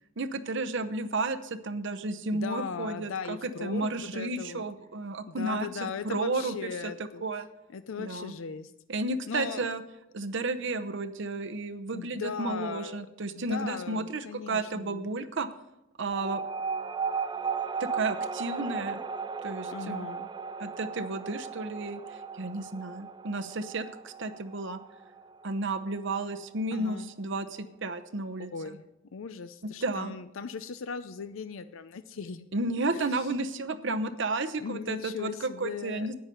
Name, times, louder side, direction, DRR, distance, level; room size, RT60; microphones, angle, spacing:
voice 1, 0.2-5.7 6.0-6.9 7.2-7.5 8.0-8.3 8.9-9.8 10.1-15.5 16.0-16.4 17.8-19.0 19.4-20.1 20.6-24.8 25.4-28.8 29.8-30.1 32.5-36.1, right 2 dB, 60° right, 11 dB, 0.8 m, -32 dB
voice 2, 2.3-4.6 5.3-7.2 7.7-8.7 9.3-9.7 11.9-13.1 13.4-15.2 19.7-20.3 26.7-27.1 28.5-32.5 32.9-33.4 34.6-36.1, left 5 dB, 70° left, 11 dB, 0.5 m, -38 dB
sound 1, 16.1-27.0, right 5 dB, 20° right, 0.4 m, -36 dB
10.5 x 9.0 x 6.8 m, 0.87 s
head